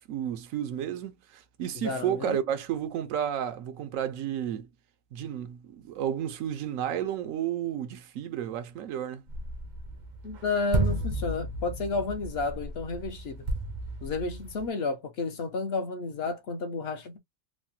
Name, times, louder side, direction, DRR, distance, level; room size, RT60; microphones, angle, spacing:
voice 1, 0.1-4.7 5.1-9.2, right 10 dB, 85° right, 1.0 m, -32 dB
voice 2, 1.8-2.4 10.2-13.5 14.0-17.2, left 3 dB, 60° left, 0.8 m, -31 dB
sound 1, 9.3-14.7, right 2 dB, 55° right, 0.5 m, -33 dB
3.2 x 2.1 x 2.6 m
omnidirectional pair, 1.4 m